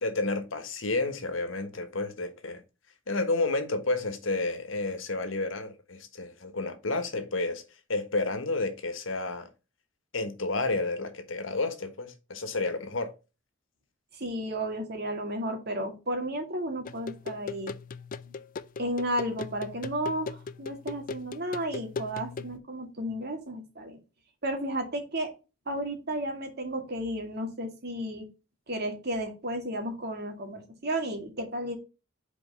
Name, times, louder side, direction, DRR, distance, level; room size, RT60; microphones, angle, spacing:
voice 1, 0.0-2.6 3.1-7.6 7.9-9.5 10.1-13.1, left 3 dB, 80° left, 1.4 m, -31 dB
voice 2, 14.1-17.7 18.8-24.0 24.4-25.3 25.7-28.3 28.7-31.8, right 1 dB, 55° right, 2.1 m, -33 dB
sound 1, 16.8-22.6, left 4 dB, 45° left, 0.4 m, -39 dB
5.3 x 4.6 x 5.3 m
head